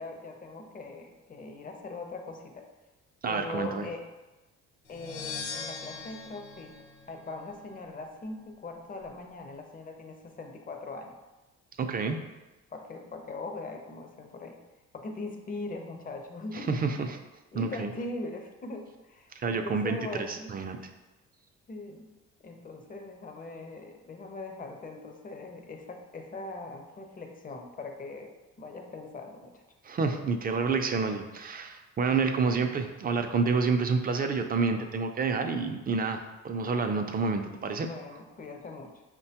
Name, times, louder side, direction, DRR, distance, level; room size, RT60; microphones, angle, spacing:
voice 1, 0.0-2.7 3.3-4.1 4.9-6.7 7.1-11.2 12.7-14.6 14.9-17.0 17.5-20.6 21.7-22.1 22.4-29.6 37.8-39.0, left 2 dB, 30° left, 4 dB, 0.5 m, -41 dB
voice 2, 3.2-3.9 11.8-12.2 16.5-17.2 17.5-17.9 19.4-20.8 29.8-37.9, right 4 dB, 30° right, 5 dB, 0.4 m, -29 dB
sound 1, 4.9-7.7, left 5 dB, 90° left, 0.7 m, -41 dB
5.3 x 2.2 x 2.8 m, 1.1 s
cardioid pair, 90°, 30 cm